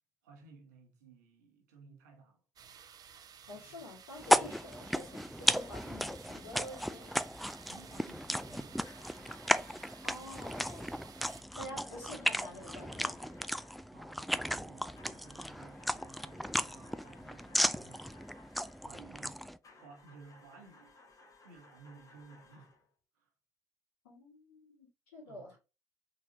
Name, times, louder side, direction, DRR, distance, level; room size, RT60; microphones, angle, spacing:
voice 1, 0.2-2.4 3.5-3.9 4.3-4.5 7.7-8.8 13.9-18.2 18.6-20.9 21.4-22.8 23.2-23.3 25.2-25.6, right 4 dB, 80° right, 1.1 m, -57 dB
sound 1, 2.6-11.4, right 7 dB, 45° right, 0.6 m, -55 dB
voice 2, 3.5-7.1 10.0-10.9 11.6-13.2 24.0-25.6, left 1 dB, 80° left, 2.5 m, -48 dB
sound 2, 4.2-19.6, equal, ahead, 0.3 m, -35 dB
sound 3, 8.8-10.4 11.5-14.0 14.9-18.9 19.6-22.9, left 2 dB, 40° left, 1.2 m, -60 dB
4.0 x 4.0 x 3.0 m
figure-of-eight pair, 50°, 9 cm